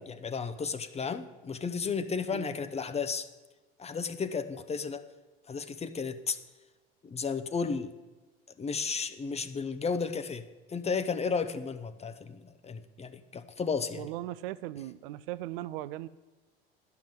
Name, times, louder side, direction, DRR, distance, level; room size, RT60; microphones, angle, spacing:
voice 1, 0.0-3.3 3.8-5.0 5.5-6.4 7.0-7.9 8.6-14.1, left 5 dB, 20° left, 12 dB, 0.8 m, -33 dB
voice 2, 14.0-16.1, right 15 dB, 60° right, 15 dB, 0.5 m, -38 dB
11.5 x 5.8 x 7.7 m, 1.2 s
hypercardioid pair, 75°, 31 cm